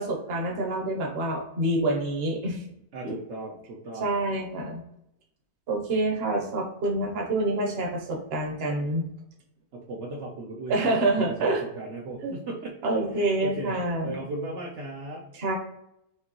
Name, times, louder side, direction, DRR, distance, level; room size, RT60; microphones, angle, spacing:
voice 1, 0.0-2.6 3.0-3.1 4.0-4.8 5.7-9.0 10.7-11.6 12.2-12.3 12.8-14.2 15.3-15.5, right 2 dB, 45° right, 0 dB, 0.9 m, -27 dB
voice 2, 2.9-4.2 9.7-12.7 13.1-13.8 14.0-15.2, right 2 dB, 75° right, -2 dB, 0.6 m, -37 dB
5.1 x 2.9 x 2.8 m, 0.80 s
omnidirectional pair, 2.0 m